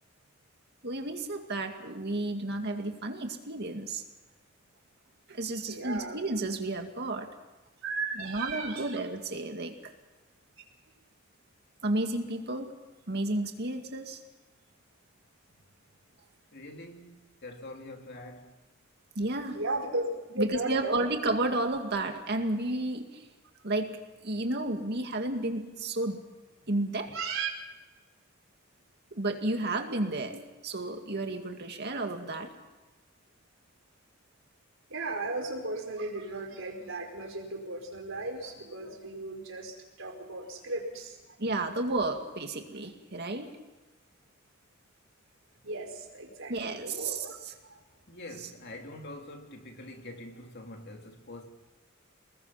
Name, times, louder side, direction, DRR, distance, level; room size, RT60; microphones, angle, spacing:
voice 1, 0.8-4.0 5.3-7.3 8.2-9.9 11.8-12.8 13.1-14.2 19.2-19.6 20.4-23.2 23.6-26.2 26.7-27.2 29.2-32.5 41.4-43.6 46.5-47.5, right 2 dB, 55° right, 2.2 m, -32 dB
voice 2, 5.7-6.2 7.8-9.0 19.5-20.1 20.4-21.2 27.1-27.5 34.9-41.4 45.6-47.4 47.6-47.8, right 3 dB, 70° right, 4.9 m, -36 dB
voice 3, 16.5-18.5 48.1-51.5, left 1 dB, 55° left, 3.0 m, -45 dB
29.0 x 21.0 x 5.8 m
head